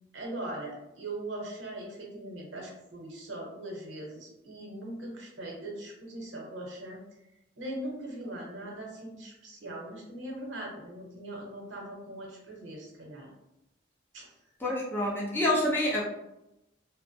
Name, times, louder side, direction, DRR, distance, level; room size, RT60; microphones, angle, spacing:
voice 1, 0.1-7.0 7.6-13.3 14.1-14.3, right 1 dB, 90° right, -1 dB, 0.8 m, -40 dB
voice 2, 14.6-16.0, left 1 dB, 10° left, -4 dB, 0.5 m, -27 dB
2.4 x 2.1 x 2.6 m, 0.88 s
head